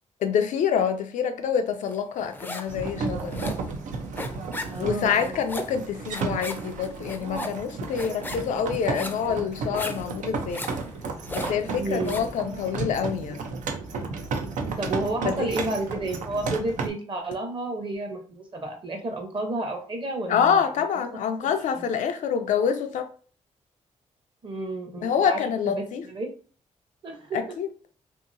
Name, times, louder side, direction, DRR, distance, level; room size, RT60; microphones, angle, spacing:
voice 1, 0.2-3.6 4.8-10.6 11.3-13.5 15.2-15.5 20.3-23.1 25.0-26.0 27.3-27.7, left 7 dB, 90° left, 0.4 m, -26 dB
sound 1, 1.9-2.8 3.1-12.4, left 2 dB, 15° left, 0.4 m, -37 dB
sound 2, 2.7-16.9, right 4 dB, 85° right, 0.5 m, -33 dB
voice 2, 4.7-5.4 11.8-12.2 14.8-20.6 21.4-21.9 24.4-26.3 27.0-27.6, right 2 dB, 40° right, 0.9 m, -31 dB
2.7 x 2.7 x 2.6 m
cardioid pair, 90°, 13 cm